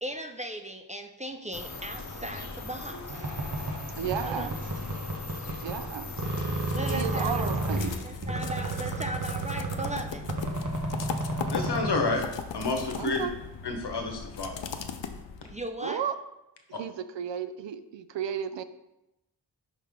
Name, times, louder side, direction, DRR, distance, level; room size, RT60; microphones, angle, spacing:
voice 1, 0.0-3.3 4.2-4.5 6.7-7.5 8.0-10.3 15.5-16.0, right 1 dB, 20° right, 5 dB, 0.4 m, -37 dB
sound 1, 1.5-8.0, left 3 dB, 40° left, 0.8 m, -40 dB
sound 2, 3.1-5.9 6.2-12.2, right 2 dB, 45° right, 1.1 m, -32 dB
voice 2, 4.0-4.5 5.6-6.1 6.9-7.8 13.0-13.3 15.8-16.1 16.8-18.6, right 8 dB, 80° right, 11 dB, 0.5 m, -33 dB
sound 3, 5.9-15.7, left 6 dB, 85° left, 0.6 m, -39 dB
voice 3, 11.2-12.2 12.5-13.2 13.6-14.6 16.7-16.8, left 3 dB, 65° left, 3 dB, 1.1 m, -30 dB
5.7 x 5.5 x 3.6 m, 0.91 s
wide cardioid pair, 85°, 43 cm